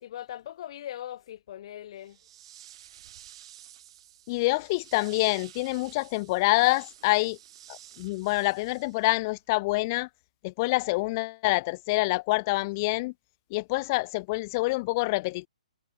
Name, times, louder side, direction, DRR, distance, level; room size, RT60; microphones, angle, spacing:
voice 1, 0.0-2.2, left 11 dB, 45° left, 1.3 m, -40 dB
sound 1, 2.0-9.3, right 12 dB, 45° right, 7.7 m, -51 dB
voice 2, 4.3-7.4 7.7-10.1 10.4-13.1 13.5-15.5, left 23 dB, 25° left, 0.6 m, -26 dB
hypercardioid pair, 160°, 4 cm